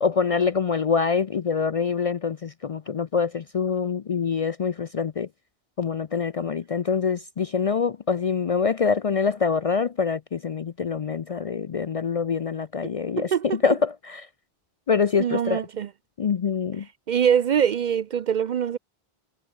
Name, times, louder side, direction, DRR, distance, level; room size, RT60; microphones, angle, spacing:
voice 1, 0.0-5.3 5.8-14.3 14.9-15.6 16.2-16.9, left 5 dB, 50° left, 0.5 m, -25 dB
voice 2, 13.2-13.6 15.2-15.9 17.1-18.8, right 8 dB, 55° right, 0.6 m, -23 dB
omnidirectional pair, 1.0 m